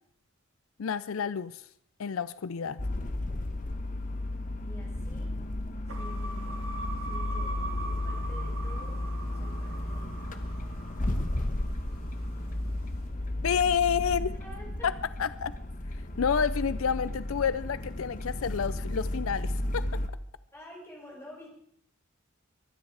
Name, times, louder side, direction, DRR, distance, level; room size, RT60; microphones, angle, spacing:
voice 1, 0.8-1.6 2.0-2.8 13.4-14.3 14.8-14.9 15.2-15.5 16.2-19.9, left 7 dB, 80° left, 16 dB, 0.5 m, -29 dB
sound 1, 2.8-20.1, left 1 dB, 40° left, 1.1 m, -33 dB
voice 2, 4.6-5.4 5.9-6.6 7.0-9.0 9.3-10.4 14.4-14.7 20.5-21.5, equal, 10° left, -2 dB, 5.3 m, -50 dB
sound 2, 5.9-12.2, right 2 dB, 80° right, 3.0 m, -42 dB
23.0 x 9.8 x 4.8 m, 0.66 s
head